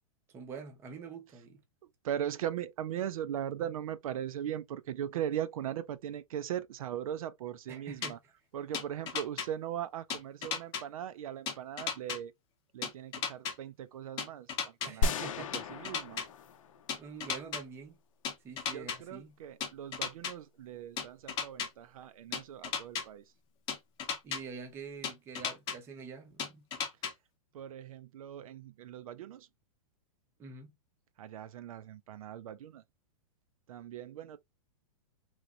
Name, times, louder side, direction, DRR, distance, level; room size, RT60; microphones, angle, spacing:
voice 1, 0.3-1.6 7.7-8.2 14.9-15.9 17.0-18.0 18.4-19.4 24.2-26.7 30.4-30.8, right 5 dB, 15° right, 0.6 m, -46 dB
voice 2, 2.0-8.2 8.5-12.3 12.7-15.1 15.5-16.2 18.7-23.2 27.5-29.5 31.2-32.8 33.7-34.4, right 10 dB, 70° right, 0.4 m, -39 dB
sound 1, 8.0-8.1 8.7-9.5 10.1-10.8 11.5-12.2 12.8-13.5 14.2-14.9 15.5-16.3 16.9-17.6 18.2-19.0 19.6-20.3 21.0-21.7 22.3-23.0 23.7-24.4 25.0-25.8 26.4-27.1, left 7 dB, 20° left, 0.8 m, -35 dB
sound 2, 15.0-17.3, left 3 dB, 60° left, 0.6 m, -34 dB
3.1 x 3.0 x 2.5 m
hypercardioid pair, 165°, 19 cm